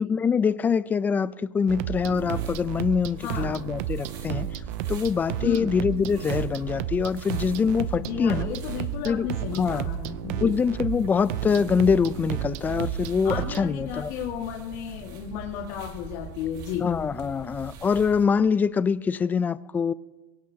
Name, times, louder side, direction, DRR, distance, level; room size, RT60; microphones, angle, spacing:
voice 1, 0.0-4.5 4.9-8.5 9.1-9.3 9.5-9.9 10.4-14.1 16.8-19.9, left 6 dB, 20° left, 0.5 m, -24 dB
sound 1, 1.7-13.7, right 12 dB, 70° right, 0.6 m, -32 dB
sound 2, 1.9-18.3, right 5 dB, 50° right, 2.0 m, -42 dB
voice 2, 3.2-3.6 5.4-5.8 8.0-10.6 13.2-16.9 17.4-17.5, left 10 dB, 65° left, 1.9 m, -33 dB
22.5 x 17.0 x 2.9 m
supercardioid pair, 135°, 9 cm